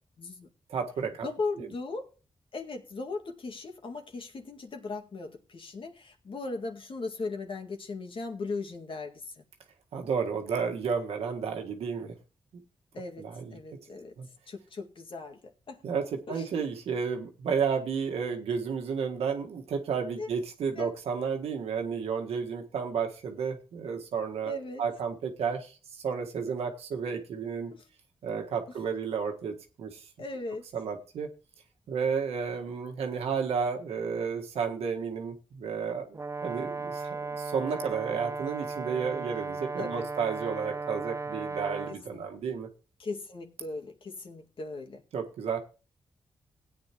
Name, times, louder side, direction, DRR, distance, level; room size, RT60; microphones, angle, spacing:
voice 1, 0.2-0.5 1.2-2.1 2.5-9.4 12.9-13.2 13.5-14.1 14.5-15.8 16.3-16.4 20.2-20.3 20.8-20.9 24.4-24.8 27.7-27.8 30.2-30.7 39.8-40.1 41.9-42.3 43.0-45.0, left 3 dB, 60° left, 2.0 m, -38 dB
voice 2, 0.7-1.3 1.6-1.7 9.9-12.1 12.5-12.6 13.2-13.6 14.2-14.3 15.8-27.7 28.2-30.1 30.7-31.3 31.9-42.7 45.1-45.6, right 6 dB, 85° right, 1.6 m, -32 dB
Brass instrument, 36.1-42.0, right 4 dB, 30° right, 0.8 m, -36 dB
16.5 x 9.0 x 3.0 m
cardioid pair, 60°, 10 cm